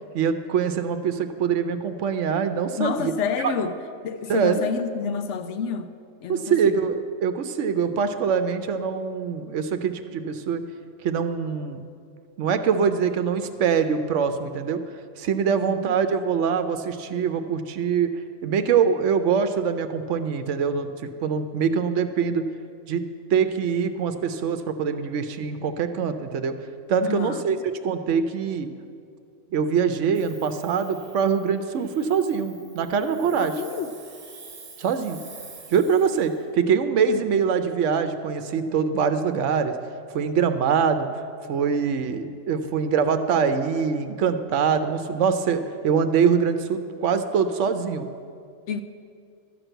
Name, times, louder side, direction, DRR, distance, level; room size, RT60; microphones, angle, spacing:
voice 1, 0.1-3.1 3.4-3.5 4.3-4.6 6.3-10.6 11.0-11.8 12.4-14.8 15.2-18.1 18.4-22.4 22.9-23.0 23.3-26.5 26.9-27.6 27.8-28.7 29.5-33.5 34.8-35.2 35.7-39.7 40.1-41.1 41.5-48.1, right 6 dB, 80° right, 9 dB, 1.0 m, -24 dB
voice 2, 2.8-3.8 4.0-5.9 6.2-6.8 15.5-15.9 27.0-27.6 33.4-33.9 48.7-48.8, left 6 dB, 75° left, 9 dB, 0.9 m, -29 dB
Hiss, 30.1-36.4, right 4 dB, 50° right, 1.4 m, -47 dB
12.5 x 6.1 x 7.9 m, 2.3 s
omnidirectional pair, 1.3 m